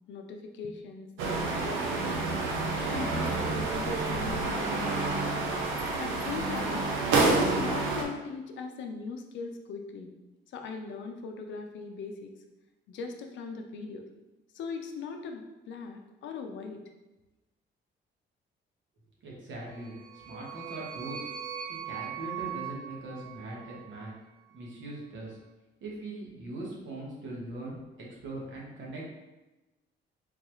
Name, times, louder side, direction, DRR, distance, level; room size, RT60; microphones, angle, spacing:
voice 1, 0.1-1.1 1.3-2.5 2.9-5.5 6.0-6.8 7.3-10.1 10.5-12.3 12.9-14.1 14.5-16.8, left 4 dB, 70° left, 4 dB, 0.5 m, -40 dB
sound 1, 1.2-8.0, right 3 dB, 90° right, 0.6 m, -28 dB
voice 2, 19.2-19.9 20.3-21.3 21.8-24.1 24.5-25.4 25.8-27.8 28.2-29.0, right 2 dB, 75° right, -4 dB, 1.2 m, -40 dB
sound 2, 19.7-24.1, right 9 dB, 45° right, 0.6 m, -40 dB
3.9 x 2.3 x 3.0 m, 1.1 s
cardioid pair, 90°, 20 cm